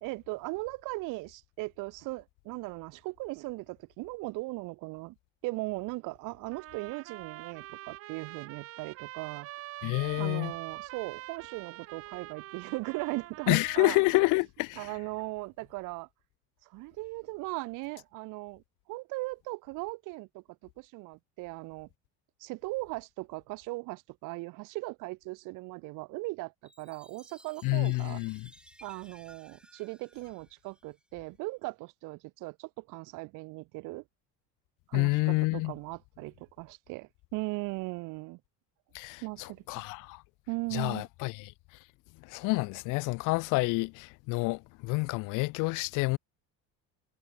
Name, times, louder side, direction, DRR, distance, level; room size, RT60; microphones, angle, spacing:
voice 1, 0.0-5.1 5.4-9.5 10.2-14.0 14.8-16.1 16.6-18.6 18.9-20.4 20.8-21.9 22.4-28.2 28.8-34.0 34.9-38.4 39.2-39.8 40.5-41.1, right 24 dB, 65° right, 1.1 m, -38 dB
sound 1, 6.5-14.3, right 15 dB, 45° right, 0.9 m, -45 dB
voice 2, 9.8-10.5 13.5-14.9 27.6-28.5 34.9-35.7 38.9-40.2 40.7-41.5 42.3-46.2, left 25 dB, 65° left, 0.7 m, -28 dB
Chime, 26.7-31.2, right 1 dB, 5° right, 4.1 m, -58 dB
cardioid pair, 160°, 34 cm